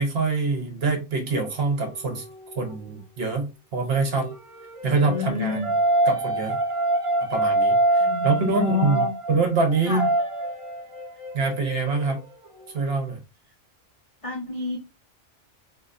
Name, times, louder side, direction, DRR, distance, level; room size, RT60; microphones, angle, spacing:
voice 1, 0.0-2.2 2.6-4.3 4.8-5.6 6.1-6.6 7.3-10.1 11.3-12.2 12.7-13.2, right 3 dB, 55° right, 1.1 m, -25 dB
sound 1, 1.3-2.8 4.0-13.1, right 2 dB, 30° right, 0.7 m, -26 dB
voice 2, 4.8-5.7 8.0-9.1 9.9-10.1 14.2-14.8, left 5 dB, 50° left, 0.4 m, -28 dB
3.8 x 2.3 x 2.5 m
omnidirectional pair, 1.3 m